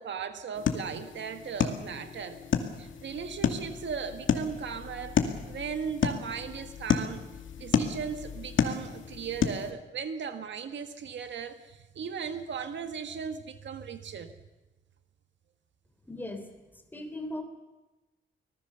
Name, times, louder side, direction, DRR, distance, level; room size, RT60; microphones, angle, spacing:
voice 1, 0.0-2.4 2.8-5.2 5.5-7.2 7.6-14.3, right 6 dB, 70° right, 8 dB, 1.6 m, -37 dB
sound 1, 0.5-9.7, left 7 dB, 85° left, 2.3 m, -31 dB
voice 2, 16.1-16.4 16.7-17.4, left 1 dB, 10° left, 6 dB, 3.5 m, -38 dB
25.0 x 20.0 x 6.9 m, 1.1 s
wide cardioid pair, 150°, 20 cm